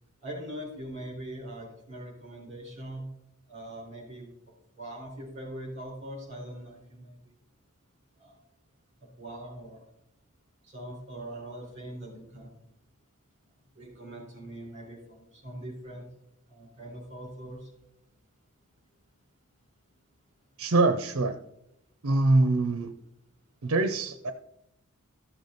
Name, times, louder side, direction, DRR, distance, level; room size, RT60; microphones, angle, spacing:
voice 1, 0.2-3.1 3.5-4.3 4.7-7.3 8.2-8.3 9.0-9.8 10.6-12.7 13.7-16.1 16.5-17.7, right 1 dB, 30° right, -2 dB, 4.5 m, -42 dB
voice 2, 20.6-21.3 22.0-22.9 23.6-24.3, right 2 dB, 70° right, 8 dB, 0.6 m, -24 dB
14.0 x 6.9 x 4.0 m, 0.83 s
head